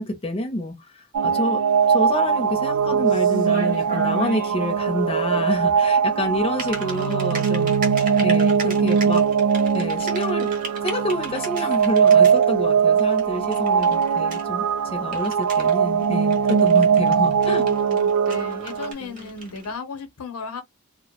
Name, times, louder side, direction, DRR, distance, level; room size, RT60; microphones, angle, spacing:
voice 1, 0.0-1.6 1.9-9.2 9.7-10.5 10.8-17.7, left 1 dB, 25° left, 0.5 m, -28 dB
sound 1, 1.1-18.9, right 6 dB, 85° right, 0.3 m, -20 dB
Typing, 1.7-19.8, right 2 dB, 35° right, 0.8 m, -39 dB
voice 2, 17.5-20.6, left 3 dB, 85° left, 0.7 m, -35 dB
2.1 x 2.1 x 2.8 m
head